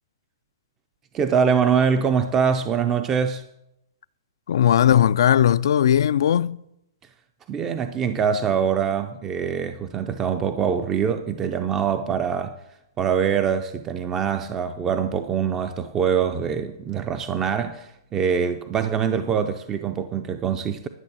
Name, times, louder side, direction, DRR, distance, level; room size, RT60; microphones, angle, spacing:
voice 1, 1.1-3.4 7.5-12.6 13.0-20.9, right 7 dB, 15° right, 0.5 m, -24 dB
voice 2, 4.5-6.6, left 10 dB, 65° left, 0.3 m, -18 dB
11.0 x 6.2 x 8.6 m
hypercardioid pair, 160°, 2 cm